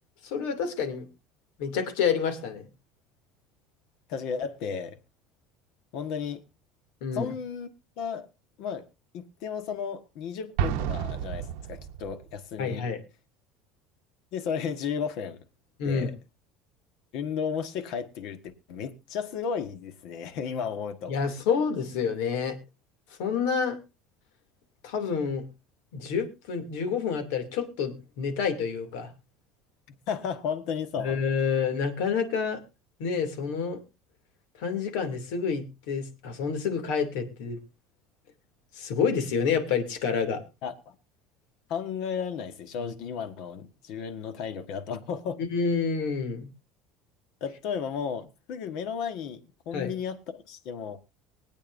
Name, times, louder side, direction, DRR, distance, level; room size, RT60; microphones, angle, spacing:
voice 1, 0.2-1.0 1.6-2.6 7.0-7.3 12.6-13.0 15.8-16.1 21.1-22.6 23.2-23.8 24.8-25.4 25.9-29.1 31.0-32.6 33.0-33.8 34.6-37.6 38.8-40.4 45.4-46.5 49.7-49.9, left 6 dB, 80° left, 2.6 m, -28 dB
voice 2, 4.1-5.0 5.9-6.4 7.1-7.7 8.0-8.3 8.6-8.8 9.1-12.8 14.3-15.4 15.8-16.1 17.1-18.4 18.7-21.1 29.9-31.2 40.6-40.7 41.7-45.4 47.4-51.0, left 7 dB, 55° left, 1.4 m, -34 dB
Explosion, 10.6-12.3, right 9 dB, 75° right, 0.8 m, -30 dB
23.5 x 8.7 x 2.6 m
cardioid pair, 165°, 0 cm